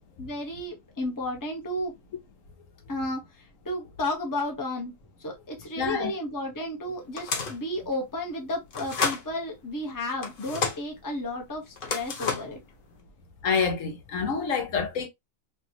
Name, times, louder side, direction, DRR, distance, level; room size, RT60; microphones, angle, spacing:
voice 1, 0.2-1.9 2.9-4.9 5.2-12.6, left 1 dB, 15° left, 0.8 m, -33 dB
voice 2, 5.8-6.1 13.4-15.1, left 5 dB, 75° left, 1.2 m, -27 dB
sound 1, 7.2-7.7 8.7-9.2 10.2-10.8 11.8-12.6, left 5 dB, 50° left, 0.8 m, -30 dB
3.3 x 2.6 x 2.7 m
omnidirectional pair, 1.4 m